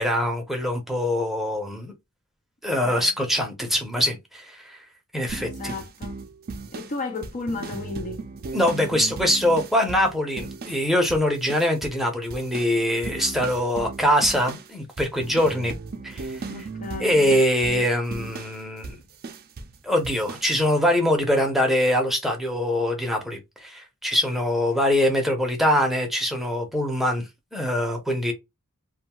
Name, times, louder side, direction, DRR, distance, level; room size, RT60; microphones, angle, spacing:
voice 1, 0.0-1.9 2.6-4.6 5.1-5.7 8.5-15.7 16.0-16.3 17.0-18.9 19.8-27.2 27.5-28.3, left 1 dB, ahead, 0.7 m, -23 dB
voice 2, 2.7-3.1 5.4-6.2 6.7-8.2 13.1-13.3 16.5-17.1, left 3 dB, 35° left, 0.4 m, -34 dB
sound 1, 5.3-10.8 11.1-12.1 12.3-19.8 20.0-20.5, right 3 dB, 45° right, 0.5 m, -36 dB
2.6 x 2.3 x 2.9 m
head